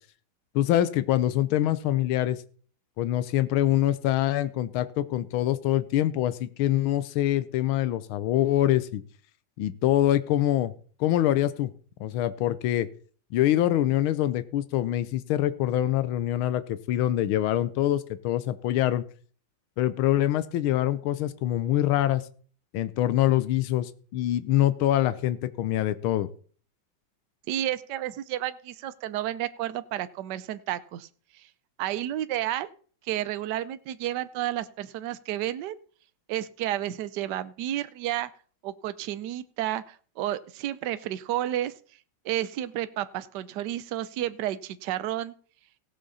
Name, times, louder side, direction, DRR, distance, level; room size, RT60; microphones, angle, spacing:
voice 1, 0.5-2.4 3.0-9.0 9.6-10.7 11.0-11.7 12.0-12.9 13.3-19.0 19.8-22.2 22.7-26.3, left 13 dB, 85° left, 15 dB, 1.5 m, -25 dB
voice 2, 27.5-31.1 31.4-31.5 31.8-32.7 33.0-35.8 36.3-38.3 38.6-41.7 42.2-45.3, right 13 dB, 65° right, 13 dB, 1.2 m, -31 dB
17.0 x 7.5 x 4.1 m, 0.44 s
omnidirectional pair, 2.2 m